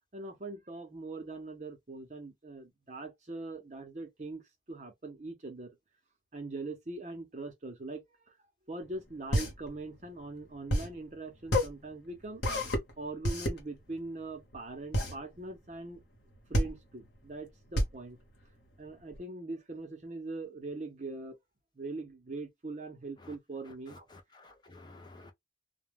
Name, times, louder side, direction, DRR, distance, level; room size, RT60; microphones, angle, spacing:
voice 1, 0.1-4.4 4.7-5.8 6.3-8.0 8.7-12.4 13.0-16.0 16.5-18.2 18.8-21.4 21.8-24.1, right 2 dB, 40° right, 0.6 m, -42 dB
sound 1, 8.8-19.2, equal, 75° left, 1.0 m, -31 dB
voice 2, 23.9-25.3, left 2 dB, 25° left, 0.4 m, -53 dB
2.2 x 2.1 x 3.2 m
head